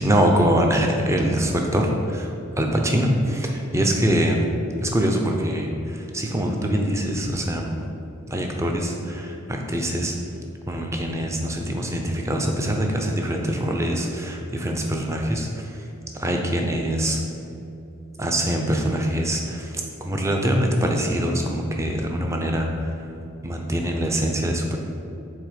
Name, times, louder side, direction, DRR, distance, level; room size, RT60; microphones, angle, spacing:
voice 1, 0.0-2.3 2.6-4.4 4.8-7.7 8.3-10.1 10.7-15.5 16.2-17.2 18.2-19.7 20.0-22.9 23.4-24.8, equal, 15° right, 2 dB, 0.5 m, -23 dB
6.4 x 4.0 x 5.1 m, 2.7 s
head